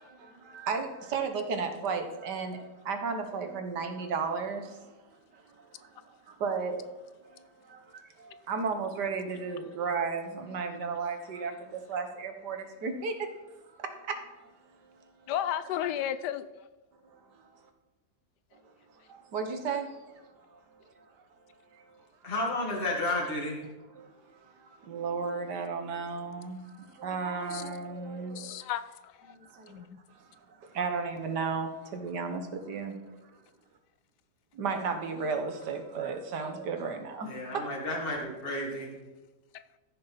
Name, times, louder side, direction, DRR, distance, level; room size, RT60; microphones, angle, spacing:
voice 1, 0.0-4.9 5.3-6.8 7.3-13.3 13.8-14.2 17.1-17.6 18.5-18.6 19.1-21.1 21.7-22.0 23.9-28.7 29.3-29.9 30.2-33.0 34.5-37.7, right 5 dB, 85° right, 6 dB, 1.9 m, -35 dB
voice 2, 15.3-16.5 27.5-27.6 28.3-29.3 29.7-30.0, left 10 dB, 85° left, 13 dB, 1.2 m, -33 dB
voice 3, 22.2-23.6 37.2-38.9, left 1 dB, 35° left, -1 dB, 2.0 m, -32 dB
14.5 x 6.7 x 4.1 m, 1.2 s
omnidirectional pair, 1.8 m